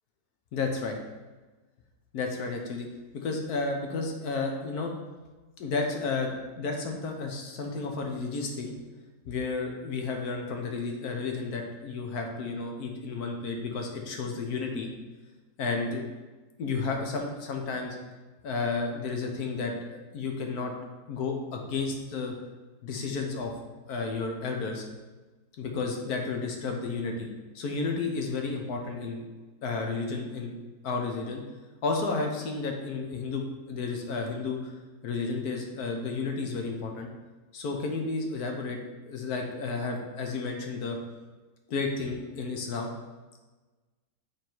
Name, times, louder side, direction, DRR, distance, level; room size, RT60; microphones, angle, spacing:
voice 1, 0.5-1.0 2.1-2.9 3.1-4.9 5.6-8.7 9.3-14.9 15.6-16.0 16.6-18.0 18.4-20.7 21.1-22.3 22.8-23.5 23.9-24.8 25.6-27.3 27.5-29.3 29.6-30.5 30.8-31.4 31.8-34.8 35.0-37.1 37.5-38.8 39.0-41.0 41.7-42.9, left 4 dB, 70° left, 2 dB, 1.4 m, -32 dB
7.8 x 3.6 x 4.6 m, 1.2 s
omnidirectional pair, 1.8 m